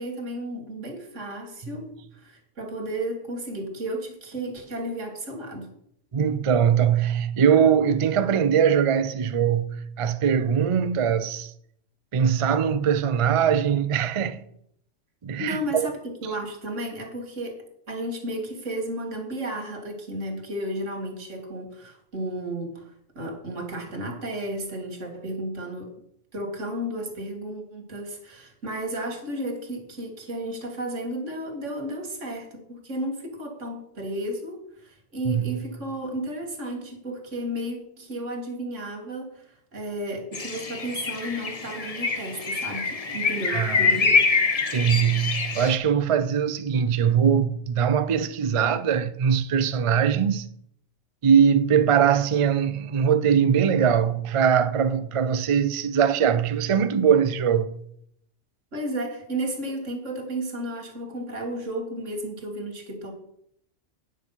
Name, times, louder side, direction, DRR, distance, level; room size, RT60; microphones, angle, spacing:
voice 1, 0.0-5.7 15.4-22.9 23.2-25.9 26.3-39.5 39.7-44.3 58.7-63.1, right 1 dB, 90° right, 2.1 m, -33 dB
voice 2, 6.1-11.5 12.1-14.4 15.2-15.9 35.3-35.6 43.5-44.0 44.7-50.5 51.2-57.8, right 7 dB, 45° right, 0.4 m, -21 dB
sound 1, 40.3-45.8, left 4 dB, 35° left, 0.8 m, -25 dB
9.6 x 6.3 x 5.5 m
omnidirectional pair, 1.2 m